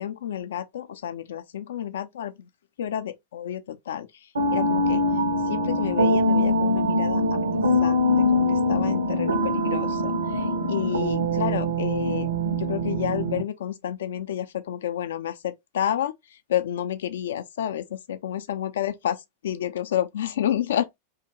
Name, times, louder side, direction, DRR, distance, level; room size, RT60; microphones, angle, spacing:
voice 1, 0.0-2.5 2.8-5.0 5.5-7.5 7.8-12.3 12.6-21.0, left 10 dB, 60° left, 0.3 m, -30 dB
sound 1, 4.3-13.4, equal, 75° right, 0.5 m, -23 dB
2.8 x 2.1 x 2.7 m
figure-of-eight pair, 90°, 0 cm